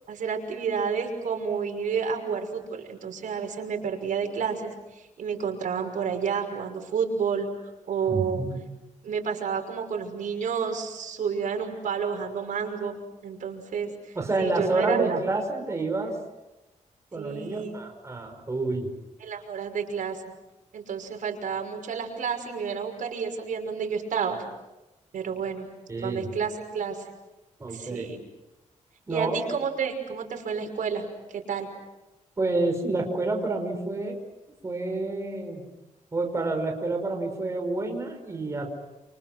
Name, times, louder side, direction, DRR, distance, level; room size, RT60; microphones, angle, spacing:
voice 1, 0.1-7.5 7.9-8.4 9.0-15.2 17.1-17.7 19.2-20.2 20.7-24.4 25.1-25.7 26.0-27.0 27.7-28.2 29.1-31.7, right 6 dB, 90° right, 3 dB, 5.9 m, -30 dB
voice 2, 8.1-8.6 14.1-16.1 17.1-18.9 25.9-26.3 27.6-28.1 29.1-29.4 32.4-34.2 34.6-35.6 36.1-38.7, right 2 dB, 20° right, 3 dB, 5.5 m, -29 dB
29.5 x 29.5 x 6.2 m, 1.0 s
wide cardioid pair, 160°, 13 cm